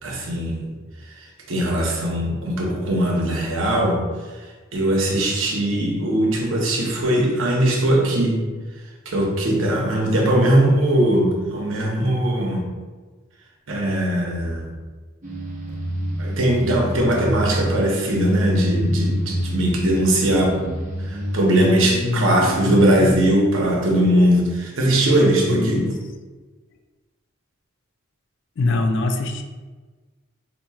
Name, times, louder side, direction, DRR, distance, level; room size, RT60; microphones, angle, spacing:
voice 1, 0.0-0.7 1.5-4.0 4.7-8.5 9.1-12.6 13.7-14.7 16.2-20.5 21.0-25.9, right 1 dB, 65° right, -2 dB, 0.8 m, -20 dB
sound 1, 15.2-23.1, equal, 35° right, 0.7 m, -27 dB
voice 2, 22.0-22.3 25.5-26.0 28.6-29.4, left 2 dB, 60° left, 5 dB, 0.4 m, -23 dB
4.0 x 2.9 x 2.3 m, 1.3 s
head